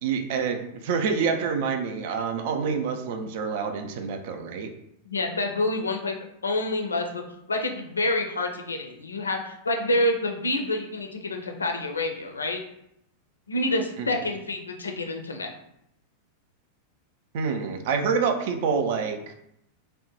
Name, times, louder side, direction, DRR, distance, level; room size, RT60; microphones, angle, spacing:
voice 1, 0.0-4.7 14.0-14.1 17.3-19.2, right 5 dB, 50° right, 7 dB, 0.4 m, -27 dB
voice 2, 5.0-6.1 6.4-7.2 7.5-12.6 13.5-15.5, left 2 dB, 75° left, 3 dB, 0.4 m, -27 dB
3.4 x 2.1 x 3.0 m, 0.78 s
figure-of-eight pair, 90°, 0 cm